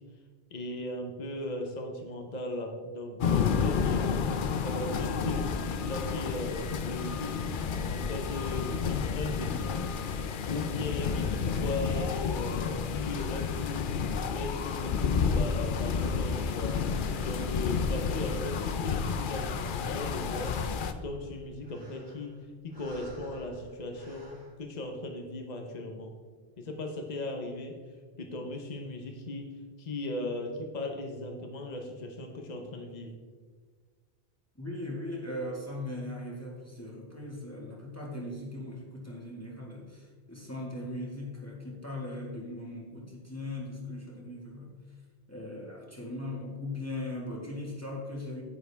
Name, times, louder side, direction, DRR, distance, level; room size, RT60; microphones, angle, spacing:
voice 1, 0.5-4.2 4.6-7.5 7.9-9.9 10.5-13.9 14.3-16.8 17.2-20.5 20.9-22.3 22.6-26.1 26.6-27.8 28.2-29.5 29.8-33.1, left 2 dB, 45° left, 2 dB, 1.1 m, -37 dB
sound 1, 3.2-20.9, left 6 dB, 60° left, 0.7 m, -30 dB
sound 2, 6.8-7.7 8.1-9.6 9.9-12.6 12.8-16.8 17.1-18.4 18.7-19.8 20.0-24.6, right 1 dB, 60° right, 2.6 m, -53 dB
voice 2, 34.6-44.7 45.3-48.4, left 1 dB, 15° left, -4 dB, 1.8 m, -39 dB
9.6 x 9.1 x 3.4 m, 1.5 s
omnidirectional pair, 1.0 m